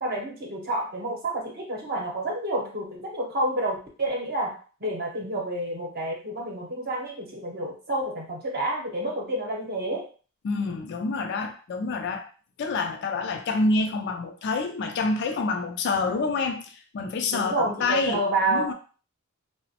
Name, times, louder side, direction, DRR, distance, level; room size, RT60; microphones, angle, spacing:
voice 1, 0.0-4.5 4.8-10.0 17.3-18.7, right 1 dB, 45° right, -1 dB, 0.8 m, -29 dB
voice 2, 10.4-12.3 12.6-18.7, left 3 dB, 50° left, 5 dB, 0.3 m, -27 dB
2.9 x 2.0 x 2.8 m, 0.38 s
head